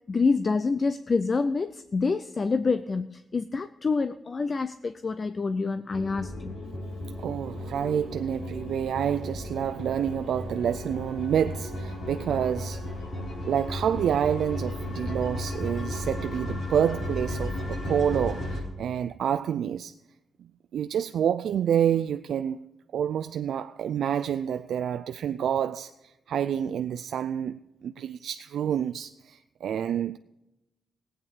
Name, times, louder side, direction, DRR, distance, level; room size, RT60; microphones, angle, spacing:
voice 1, 0.1-6.6, left 4 dB, 40° left, 0.5 m, -27 dB
sound 1, 5.9-18.6, left 1 dB, 75° left, 4.7 m, -34 dB
voice 2, 7.2-12.9 13.5-20.0 20.4-30.2, right 9 dB, 90° right, 0.4 m, -28 dB
18.5 x 8.9 x 4.8 m
wide cardioid pair, 120°, 0 cm